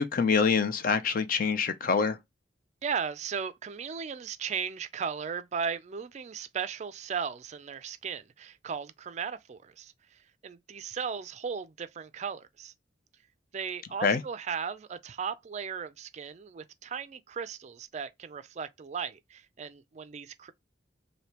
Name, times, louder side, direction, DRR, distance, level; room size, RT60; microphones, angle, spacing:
voice 1, 0.0-2.2 14.0-14.2, left 5 dB, 45° left, 0.4 m, -25 dB
voice 2, 2.8-12.7 13.5-20.5, right 6 dB, 35° right, 0.3 m, -36 dB
3.4 x 2.6 x 2.9 m
head